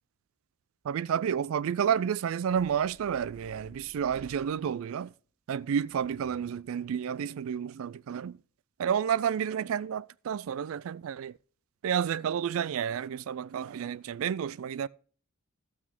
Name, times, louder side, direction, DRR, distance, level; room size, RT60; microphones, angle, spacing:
voice 1, 0.8-5.1 5.5-8.4 8.8-11.4 11.8-14.9, right 8 dB, 65° right, 0.3 m, -30 dB
sound 1, 2.5-5.0 5.9-6.9, right 1 dB, 5° right, 1.1 m, -55 dB
15.0 x 6.2 x 3.6 m
head